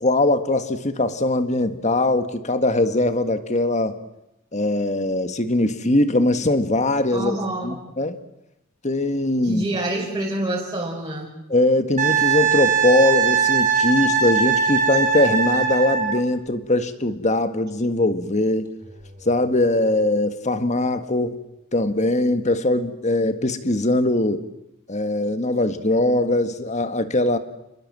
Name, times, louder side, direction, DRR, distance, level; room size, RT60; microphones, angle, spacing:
voice 1, 0.0-4.0 4.5-7.4 7.6-8.2 8.8-9.7 11.5-18.7 19.2-21.4 21.7-24.4 24.9-27.4, left 2 dB, 35° left, 9 dB, 1.6 m, -21 dB
voice 2, 7.1-7.8 9.4-11.3, right 1 dB, 20° right, -3 dB, 5.1 m, -27 dB
Wind instrument woodwind instrument, 12.0-16.2 18.9-19.0, right 6 dB, 35° right, 5.4 m, -20 dB
29.0 x 20.5 x 7.6 m, 0.90 s
head